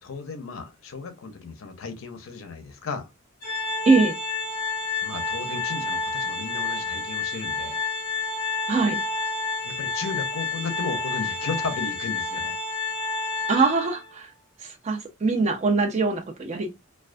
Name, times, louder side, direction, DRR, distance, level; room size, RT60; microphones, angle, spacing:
voice 1, 0.0-3.1 5.0-7.8 9.6-12.6, left 4 dB, 80° left, 0.5 m, -35 dB
Organ, 3.4-14.1, left 4 dB, 45° left, 0.7 m, -29 dB
voice 2, 3.9-4.2 8.7-9.0 13.5-14.3 14.6-16.7, right 4 dB, 35° right, 0.4 m, -22 dB
2.3 x 2.2 x 2.4 m
head